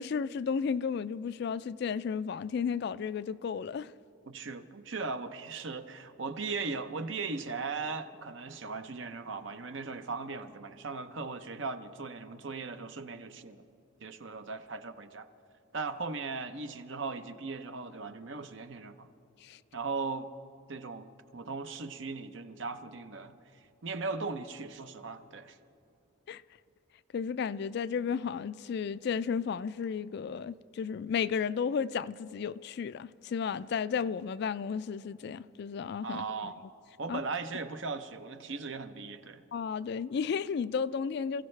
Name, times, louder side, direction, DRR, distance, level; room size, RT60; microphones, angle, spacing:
voice 1, 0.0-3.9 19.4-19.6 26.3-26.4 27.1-36.5 37.1-37.2 39.5-41.4, left 6 dB, 55° left, 0.3 m, -33 dB
voice 2, 4.3-13.6 14.0-15.3 15.7-19.1 19.7-20.3 20.7-23.3 23.8-25.6 36.0-36.6 37.0-39.4, right 4 dB, 65° right, 0.7 m, -38 dB
27.5 x 16.0 x 3.3 m
head